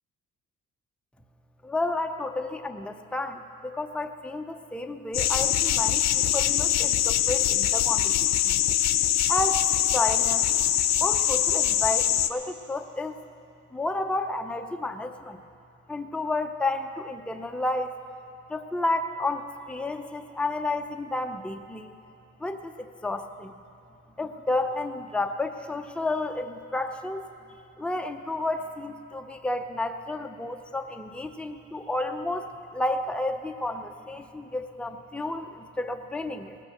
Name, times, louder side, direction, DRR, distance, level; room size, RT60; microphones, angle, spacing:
voice 1, 1.6-8.6 9.3-10.5 11.0-13.2 13.7-15.4 15.9-18.0 18.5-21.9 22.4-23.5 24.2-27.2 27.8-36.6, left 2 dB, 5° left, 6 dB, 0.6 m, -31 dB
sound 1, 5.1-12.3, left 11 dB, 60° left, 0.7 m, -23 dB
18.5 x 9.1 x 6.6 m, 2.6 s
cardioid pair, 90°, 30 cm